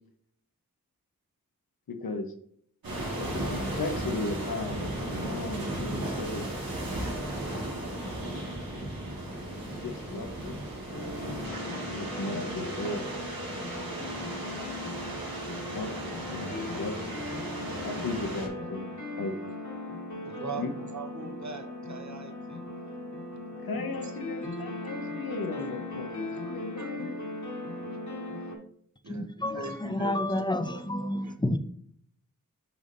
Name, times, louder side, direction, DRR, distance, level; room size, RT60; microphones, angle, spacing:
voice 1, 1.9-2.3 3.2-6.5 9.6-10.6 11.6-13.1 15.7-17.1 17.8-18.8 19.2-19.3 20.5-20.7 23.6-27.2, left 2 dB, 90° left, 0.9 m, -36 dB
sound 1, 2.8-18.5, right 1 dB, 75° right, 1.9 m, -35 dB
sound 2, 10.9-28.6, left 2 dB, 55° left, 1.7 m, -38 dB
voice 2, 20.2-22.6 24.0-24.1 26.4-26.9 27.9-28.0 28.3-28.5 29.0-31.4, right 4 dB, 55° right, 1.0 m, -42 dB
voice 3, 29.1-31.6, left 1 dB, 15° left, 0.5 m, -30 dB
7.0 x 5.3 x 2.6 m
wide cardioid pair, 65°, 35 cm